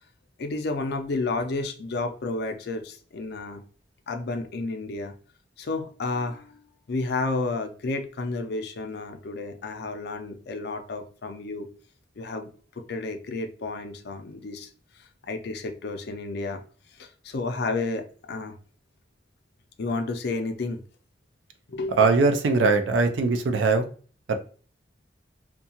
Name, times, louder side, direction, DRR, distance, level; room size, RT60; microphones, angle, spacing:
voice 1, 0.4-3.6 4.1-5.1 5.6-6.6 6.9-11.7 12.2-12.5 12.8-14.7 15.0-16.6 17.0-18.5 19.8-20.8 21.7-22.1, left 3 dB, 60° left, 6 dB, 0.5 m, -31 dB
voice 2, 22.0-23.9 24.3-24.4, right 4 dB, 80° right, 7 dB, 0.5 m, -21 dB
2.7 x 2.3 x 2.8 m, 0.40 s
head